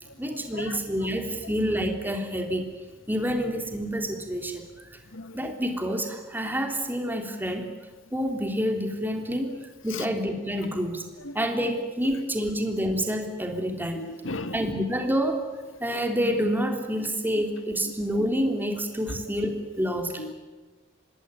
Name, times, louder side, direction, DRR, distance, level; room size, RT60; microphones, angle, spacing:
voice 1, 0.2-2.6 3.1-4.9 5.3-7.7 8.1-11.1 11.3-14.0 14.5-15.5 15.8-20.1, equal, 10° right, 4 dB, 3.4 m, -28 dB
voice 2, 14.0-14.6 20.2-20.3, left 2 dB, 75° left, 11 dB, 1.7 m, -35 dB
25.0 x 20.5 x 10.0 m, 1.2 s
head